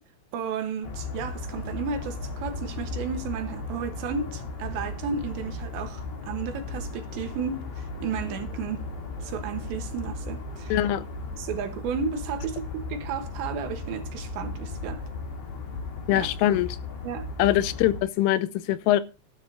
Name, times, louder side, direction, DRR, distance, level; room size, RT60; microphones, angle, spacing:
voice 1, 0.3-8.8 9.2-10.7 11.4-15.0 16.1-16.3 17.0-17.5, right 6 dB, 70° right, 3.1 m, -33 dB
sound 1, 0.8-18.0, left 3 dB, 50° left, 4.3 m, -36 dB
voice 2, 10.7-11.0 16.1-16.7 17.4-19.0, left 13 dB, 85° left, 3.2 m, -23 dB
14.5 x 12.5 x 2.6 m
omnidirectional pair, 5.8 m